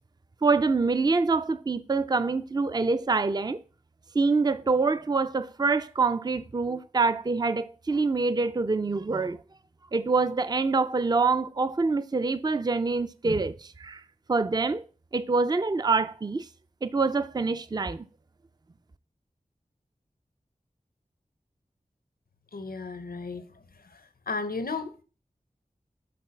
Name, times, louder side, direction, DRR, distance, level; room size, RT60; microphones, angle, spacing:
voice 1, 0.4-3.6 4.1-9.4 9.9-14.0 14.3-14.8 15.1-16.5 16.8-18.1, right 4 dB, 30° right, 0.4 m, -25 dB
voice 2, 22.5-23.4 24.3-25.0, left 4 dB, 90° left, 0.7 m, -33 dB
7.7 x 3.8 x 5.7 m
wide cardioid pair, 40°, 15 cm